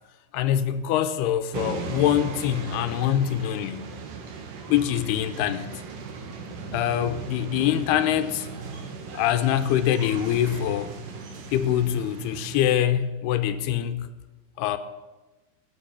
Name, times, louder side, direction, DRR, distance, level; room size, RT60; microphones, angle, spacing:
voice 1, 0.3-3.9 4.7-5.7 6.7-8.5 9.1-10.9 11.5-14.1 14.6-14.8, left 11 dB, 85° left, 2.9 m, -24 dB
sound 1, 1.5-12.8, right 4 dB, 60° right, 2.9 m, -37 dB
21.0 x 9.6 x 7.1 m
omnidirectional pair, 4.6 m